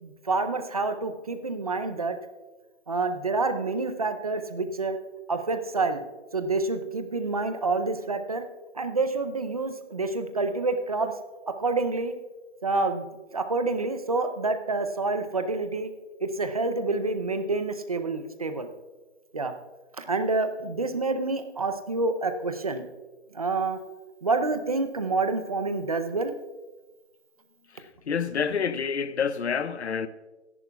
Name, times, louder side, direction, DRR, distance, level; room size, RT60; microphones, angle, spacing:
voice 1, 0.0-2.2 2.9-5.0 5.3-6.0 6.3-8.4 8.7-11.1 11.6-12.1 12.6-13.0 13.3-15.9 16.2-18.7 19.3-19.5 20.0-22.8 23.3-23.8 24.2-26.3, right 3 dB, 30° right, 0.6 m, -28 dB
voice 2, 27.7-30.1, left 6 dB, 65° left, 0.7 m, -28 dB
22.0 x 11.0 x 2.3 m
hypercardioid pair, 175°, 36 cm